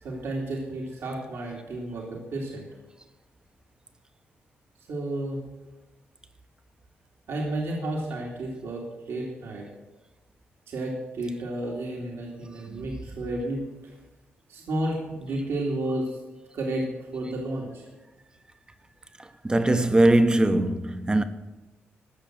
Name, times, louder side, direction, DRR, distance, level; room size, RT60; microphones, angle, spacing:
voice 1, 0.0-2.7 4.9-5.4 7.3-9.7 10.7-13.7 14.5-16.2 16.5-17.9, right 1 dB, 75° right, 2.6 m, -32 dB
voice 2, 19.4-21.2, right 1 dB, 20° right, 0.9 m, -20 dB
14.5 x 6.4 x 7.6 m
cardioid pair, 80°, 4 cm